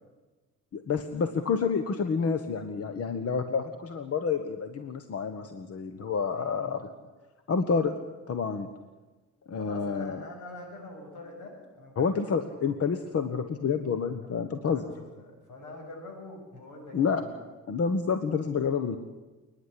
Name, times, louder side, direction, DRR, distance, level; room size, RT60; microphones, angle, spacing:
voice 1, 0.7-6.8 7.5-7.9 8.3-8.7 9.5-10.2 12.0-14.9 16.9-17.2 17.7-19.0, left 5 dB, 50° left, 8 dB, 1.4 m, -29 dB
voice 2, 6.3-6.7 9.5-12.7 14.5-17.3, left 2 dB, 80° left, 2 dB, 7.6 m, -45 dB
28.0 x 10.5 x 10.0 m, 1.2 s
cardioid pair, 90°, 30 cm